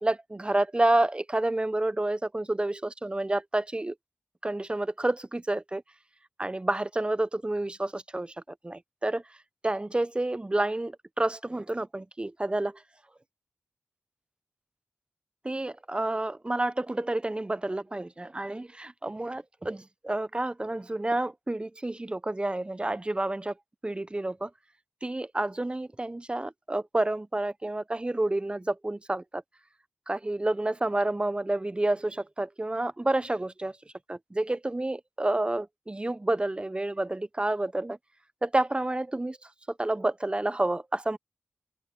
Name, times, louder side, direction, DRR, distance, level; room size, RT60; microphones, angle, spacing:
voice 1, 0.0-3.9 4.4-5.8 6.4-8.3 8.6-9.2 9.6-12.8 15.4-23.5 23.8-24.5 25.0-29.4 30.1-33.8 34.1-38.0 38.4-39.4 39.8-41.2, right 2 dB, 25° right, 0.8 m, -29 dB
open air
cardioid pair, 45°, 4 cm